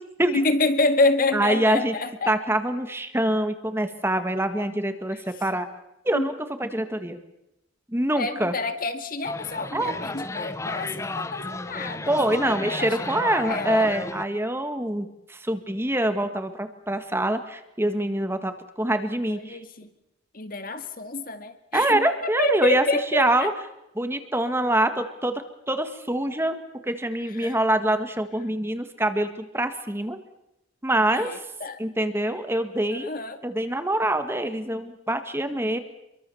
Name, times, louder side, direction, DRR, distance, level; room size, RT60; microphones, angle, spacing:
voice 1, 0.3-2.3 6.1-6.3 8.2-13.9 19.3-19.9 20.3-23.5 27.3-27.6 31.1-31.8 32.9-33.4, left 2 dB, 45° left, 9 dB, 2.1 m, -28 dB
voice 2, 1.3-1.9 2.3-5.7 6.0-6.3 6.6-7.2 7.9-8.5 9.7-9.9 12.1-19.6 21.7-22.8 23.1-23.5 23.9-25.4 25.7-26.6 26.8-30.2 30.8-31.4 31.8-33.1 33.4-35.8, right 1 dB, 10° right, 8 dB, 1.8 m, -25 dB
sound 1, 9.2-14.2, left 2 dB, 15° left, 0.9 m, -33 dB
27.0 x 23.5 x 7.1 m, 0.88 s
head